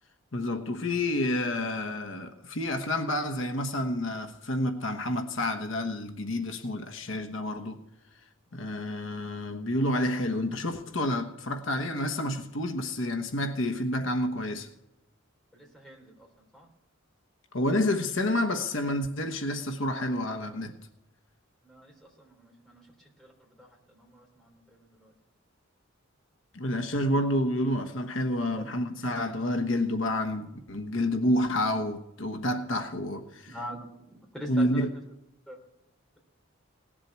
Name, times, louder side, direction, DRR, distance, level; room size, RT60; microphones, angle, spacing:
voice 1, 0.3-7.8 8.5-14.7 17.5-20.8 26.5-33.6 34.5-34.9, left 1 dB, 65° left, 1.2 m, -29 dB
voice 2, 15.5-16.1 16.5-16.7 21.6-21.9 22.2-22.8 23.2-25.1 28.6-28.7 33.5-33.8 34.3-34.8 35.5-35.6, equal, 5° left, 3.7 m, -44 dB
18.5 x 7.6 x 9.5 m
head